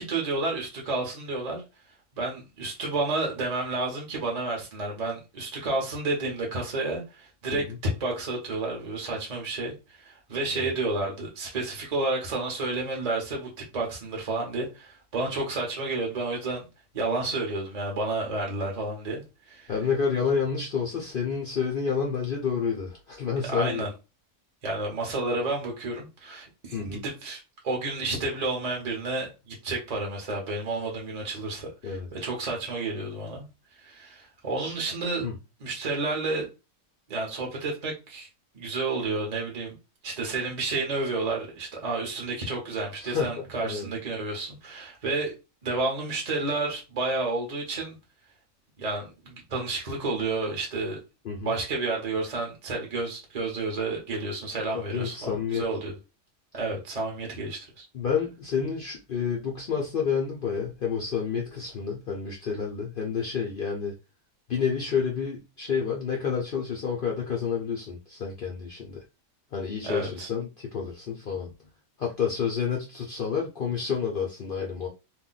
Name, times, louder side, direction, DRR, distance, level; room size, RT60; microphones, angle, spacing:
voice 1, 0.0-1.6 2.2-16.6 16.9-19.7 23.4-23.9 24.6-33.5 33.8-35.3 35.6-36.5 37.1-38.3 38.5-39.7 40.0-45.3 45.6-48.0 48.8-51.0 51.4-55.9 56.5-57.9 69.8-70.3, right 2 dB, 40° right, 0.6 m, -31 dB
voice 2, 19.7-23.9 26.7-27.0 31.8-32.1 34.6-34.8 35.2-35.4 43.0-43.9 51.2-51.6 54.9-55.6 57.9-63.9 64.5-69.0 69.5-71.5 72.0-74.9, left 6 dB, 75° left, 0.5 m, -29 dB
2.5 x 2.1 x 3.8 m
omnidirectional pair, 1.6 m